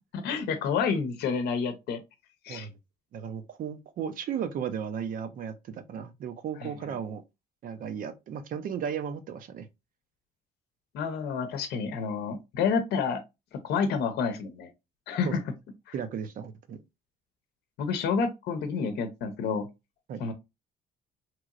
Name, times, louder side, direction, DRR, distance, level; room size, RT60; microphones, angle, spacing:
voice 1, 0.1-2.0 2.4-2.7 6.6-6.9 10.9-13.2 13.5-14.7 15.1-15.4 17.8-19.7 20.2-20.3, left 5 dB, 75° left, 0.7 m, -29 dB
voice 2, 3.1-7.2 7.6-9.7 15.2-15.4 15.9-16.8 20.1-20.2, right 8 dB, 55° right, 0.6 m, -35 dB
3.0 x 2.9 x 2.4 m
cardioid pair, 110°, 17 cm